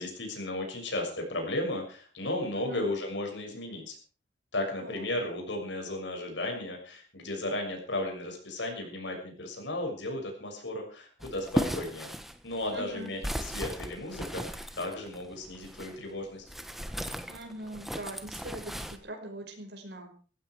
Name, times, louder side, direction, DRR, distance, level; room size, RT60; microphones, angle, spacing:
voice 1, 0.0-4.0 4.5-12.1 12.4-16.4, left 1 dB, 90° left, 2 dB, 6.6 m, -35 dB
voice 2, 2.6-2.9 4.8-5.0 12.7-13.1 17.3-20.1, right 1 dB, 65° right, 3 dB, 5.6 m, -42 dB
sound 1, 11.2-16.0 16.5-19.0, equal, ahead, 1.4 m, -36 dB
17.0 x 15.0 x 4.8 m, 0.38 s
head